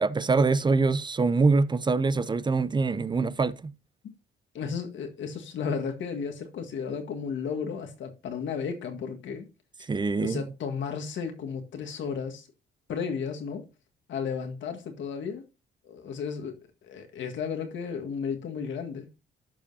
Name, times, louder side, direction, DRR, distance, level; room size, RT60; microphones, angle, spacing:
voice 1, 0.0-3.7 9.9-10.4, right 4 dB, 25° right, 0.5 m, -24 dB
voice 2, 4.5-9.5 10.2-12.5 12.9-13.6 14.1-15.4 15.8-19.1, left 6 dB, 70° left, 1.7 m, -34 dB
13.0 x 5.1 x 2.7 m
cardioid pair, 90°, 20 cm